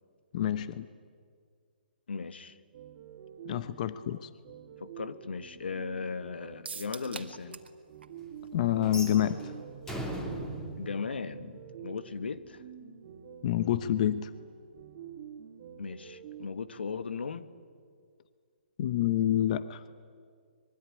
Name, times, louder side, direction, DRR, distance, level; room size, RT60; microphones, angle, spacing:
voice 1, 0.3-0.9 3.4-4.3 8.5-9.5 13.4-14.3 18.8-19.8, left 11 dB, 45° left, 0.8 m, -28 dB
voice 2, 2.1-2.6 4.8-7.6 10.8-12.6 15.8-17.5, left 5 dB, 80° left, 1.5 m, -37 dB
sound 1, 2.7-16.5, right 8 dB, 40° right, 2.8 m, -48 dB
sound 2, 6.6-7.8 8.0-8.1 8.5-8.6, right 5 dB, 80° right, 2.0 m, -42 dB
sound 3, 8.8-11.9, right 1 dB, 10° left, 3.2 m, -39 dB
25.0 x 22.5 x 9.9 m
hypercardioid pair, 150°, 6 cm